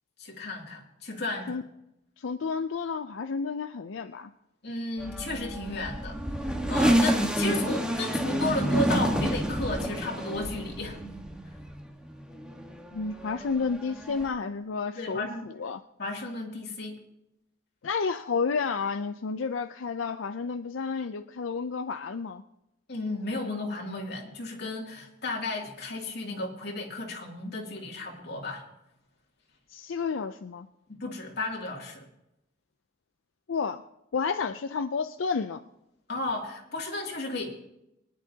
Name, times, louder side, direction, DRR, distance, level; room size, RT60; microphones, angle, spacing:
voice 1, 0.2-1.6 4.6-11.0 14.9-15.4 16.0-17.0 22.9-28.6 30.9-32.0 36.1-37.5, left 2 dB, 60° left, -1 dB, 2.7 m, -34 dB
voice 2, 2.2-4.3 12.9-15.8 17.8-22.4 29.7-30.7 33.5-33.8 34.1-35.6, left 5 dB, 90° left, 8 dB, 0.5 m, -31 dB
sound 1, 5.0-11.9 12.3-14.3, right 1 dB, 5° right, 1.4 m, -28 dB
23.5 x 10.5 x 2.8 m, 0.86 s
head